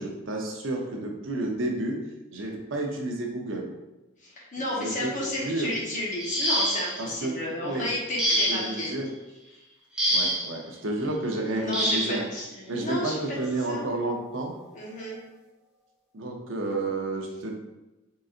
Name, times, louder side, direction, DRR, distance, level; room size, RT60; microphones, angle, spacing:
voice 1, 0.0-2.0 2.3-3.7 4.7-5.2 5.4-5.7 7.0-7.9 8.3-9.1 10.1-12.2 12.7-14.5 16.1-17.5, right 2 dB, 70° right, 1 dB, 0.7 m, -31 dB
voice 2, 4.2-8.9 11.6-13.2 13.7-13.8 14.7-15.2, left 1 dB, 40° left, -4 dB, 1.0 m, -32 dB
sound 1, 6.2-7.1 8.2-8.8 10.0-10.5 11.7-12.2 13.4-13.5 14.1-14.3, equal, 5° right, 0.7 m, -26 dB
3.9 x 3.7 x 2.5 m, 1.0 s
head